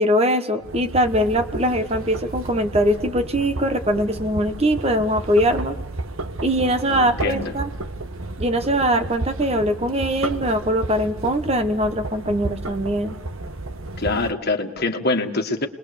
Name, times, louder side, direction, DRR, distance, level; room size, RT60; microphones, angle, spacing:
voice 1, 0.0-5.8 6.4-7.7 8.4-13.2, equal, 30° right, 8 dB, 1.2 m, -21 dB
sound 1, 0.6-14.3, right 2 dB, 70° right, 1.3 m, -32 dB
voice 2, 6.8-7.5 14.0-15.7, left 2 dB, 50° left, 5 dB, 1.8 m, -24 dB
29.5 x 21.0 x 6.8 m, 1.1 s
head